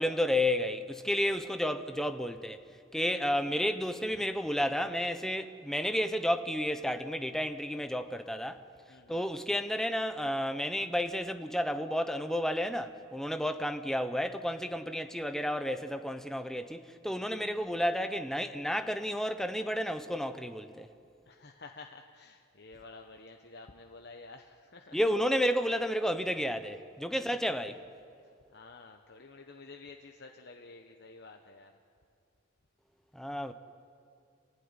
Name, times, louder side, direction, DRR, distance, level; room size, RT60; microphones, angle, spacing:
voice 1, 0.0-2.6 2.9-8.6 9.1-20.9 24.9-27.7 33.1-33.5, equal, ahead, 0.8 m, -31 dB
voice 2, 8.9-9.3 17.3-17.7 21.3-25.0 27.1-27.4 28.5-31.7, left 3 dB, 55° left, 1.1 m, -51 dB
27.0 x 16.0 x 9.8 m
head